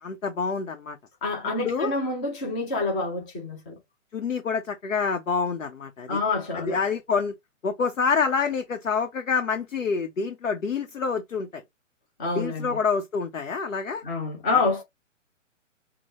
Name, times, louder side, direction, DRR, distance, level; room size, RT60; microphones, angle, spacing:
voice 1, 0.0-1.0 1.6-1.9 4.1-6.2 6.5-7.3 7.6-11.6 12.3-14.0, left 5 dB, 85° left, 1.0 m, -27 dB
voice 2, 1.2-3.8 6.1-6.8 12.2-12.7 14.0-14.8, left 3 dB, 5° left, 0.3 m, -27 dB
6.0 x 2.2 x 3.0 m
hypercardioid pair, 135°, 39 cm